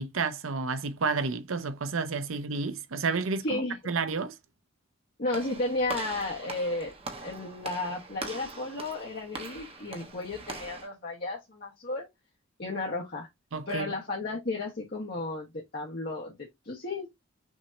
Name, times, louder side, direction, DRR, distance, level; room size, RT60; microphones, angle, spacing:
voice 1, 0.0-3.6 3.9-4.4 13.5-13.9, right 4 dB, 90° right, 0.7 m, -30 dB
voice 2, 3.4-3.8 5.2-6.9 7.2-12.1 12.6-13.3 13.7-16.3 16.6-17.1, left 2 dB, 50° left, 1.3 m, -33 dB
Walk footsteps / Slam, 5.3-10.9, right 3 dB, 30° right, 1.0 m, -41 dB
6.1 x 2.9 x 2.6 m
head